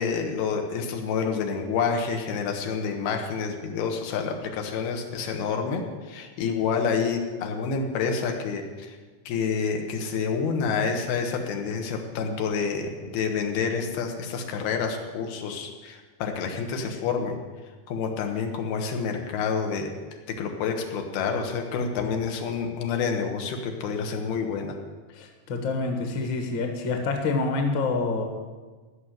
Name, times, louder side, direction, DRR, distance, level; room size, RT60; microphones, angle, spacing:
voice 1, 0.0-9.0 9.3-17.4 17.9-19.9 20.3-24.8, left 5 dB, 85° left, 3 dB, 3.3 m, -28 dB
voice 2, 25.1-28.2, left 3 dB, 50° left, 3 dB, 1.5 m, -27 dB
15.0 x 6.6 x 9.3 m, 1.4 s
omnidirectional pair, 4.3 m